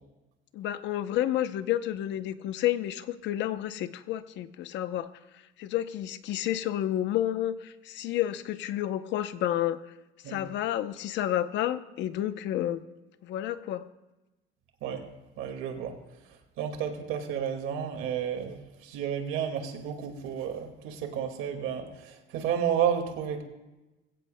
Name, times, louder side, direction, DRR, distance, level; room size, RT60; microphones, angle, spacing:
voice 1, 0.5-5.1 5.6-9.8 10.3-12.8 13.2-13.9, left 12 dB, 60° left, 12 dB, 0.7 m, -30 dB
voice 2, 15.4-16.0 16.6-23.4, right 8 dB, 75° right, 5 dB, 2.0 m, -31 dB
20.5 x 16.0 x 2.2 m, 1.1 s
cardioid pair, 175°, 21 cm